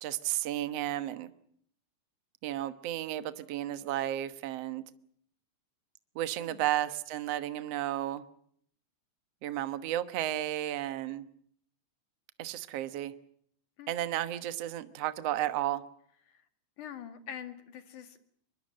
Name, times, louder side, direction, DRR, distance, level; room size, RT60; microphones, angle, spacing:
voice 1, 0.0-1.3 2.4-4.8 6.2-8.2 9.4-11.2 12.4-13.1 13.9-15.8, right 13 dB, 60° right, 12 dB, 2.0 m, -33 dB
voice 2, 16.8-18.2, left 9 dB, 70° left, 9 dB, 3.5 m, -44 dB
24.0 x 22.5 x 7.6 m, 0.65 s
omnidirectional pair, 3.7 m